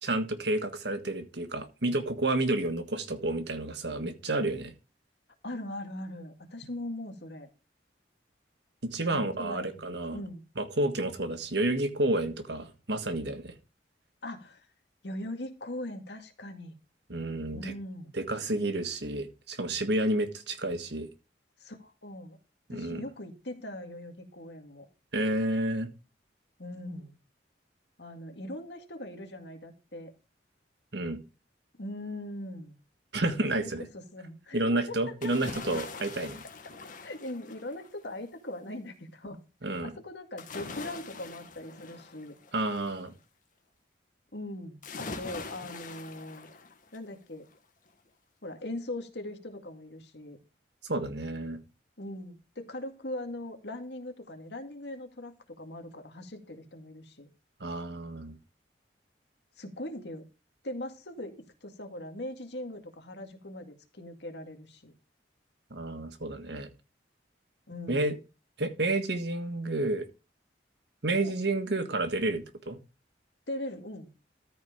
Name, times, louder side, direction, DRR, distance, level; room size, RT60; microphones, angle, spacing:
voice 1, 0.0-4.7 8.8-10.2 10.6-13.5 17.1-17.7 18.1-21.1 22.7-23.0 25.1-25.9 30.9-31.2 33.1-33.9 34.5-36.4 39.6-39.9 42.5-43.1 50.9-51.6 57.6-58.4 65.7-66.7 67.9-68.1 68.6-70.1 71.0-72.8, right 2 dB, 65° right, 1.6 m, -30 dB
voice 2, 5.4-7.5 9.1-10.4 14.2-14.7 15.0-16.8 17.5-18.1 21.6-22.4 22.7-24.9 26.6-27.2 28.0-30.1 31.8-32.8 33.2-35.0 35.4-35.5 37.0-39.4 39.7-42.4 44.3-46.5 46.9-47.5 48.4-50.4 52.0-57.3 59.6-60.3 60.6-64.9 67.7-68.1 71.2-71.4 73.5-74.1, left 1 dB, 65° left, 2.1 m, -40 dB
sound 1, 35.2-38.0 40.4-43.0 44.8-47.1 47.5-47.6, left 3 dB, 45° left, 1.8 m, -43 dB
14.0 x 4.7 x 5.0 m
head